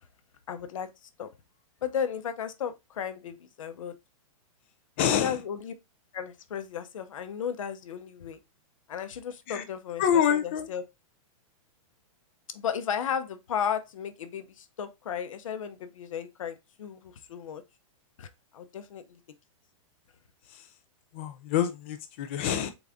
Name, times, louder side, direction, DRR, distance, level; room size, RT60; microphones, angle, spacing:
voice 1, 0.5-0.9 1.2-1.3 1.8-3.9 5.2-5.7 6.1-8.4 8.9-10.8 12.5-17.6 18.2-19.2, left 8 dB, 70° left, 0.8 m, -34 dB
voice 2, 5.0-5.4 9.5-9.6 10.0-10.7 20.5-20.7 21.1-22.7, left 9 dB, 20° left, 0.4 m, -27 dB
4.0 x 3.5 x 3.6 m
supercardioid pair, 180°, 18 cm